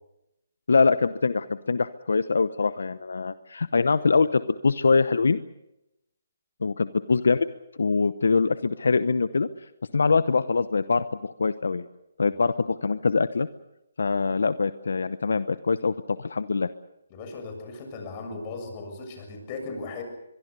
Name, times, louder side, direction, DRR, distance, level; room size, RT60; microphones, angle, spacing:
voice 1, 0.7-5.4 6.6-7.5 7.8-9.5 9.9-11.8 12.2-13.5 14.0-16.7, left 4 dB, 75° left, 14 dB, 0.9 m, -23 dB
voice 2, 17.1-20.0, left 3 dB, 30° left, 4 dB, 7.1 m, -37 dB
23.5 x 22.5 x 6.8 m, 0.88 s
hypercardioid pair, 150°, 0 cm